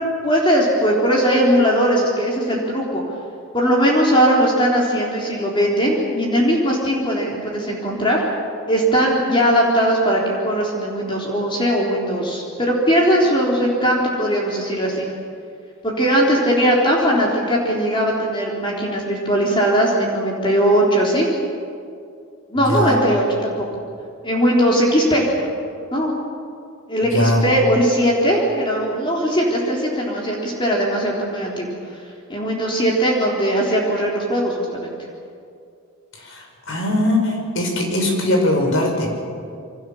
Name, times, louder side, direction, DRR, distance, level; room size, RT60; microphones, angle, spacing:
voice 1, 0.2-3.0 3.5-8.2 8.7-15.1 15.8-21.3 22.5-23.5 24.2-25.3 25.9-26.1 26.9-31.7 32.3-34.9, equal, 25° left, -3 dB, 3.8 m, -19 dB
voice 2, 22.6-23.0 27.1-27.5 36.1-39.2, left 1 dB, 60° left, 2 dB, 5.8 m, -20 dB
27.5 x 24.5 x 7.3 m, 2.4 s
head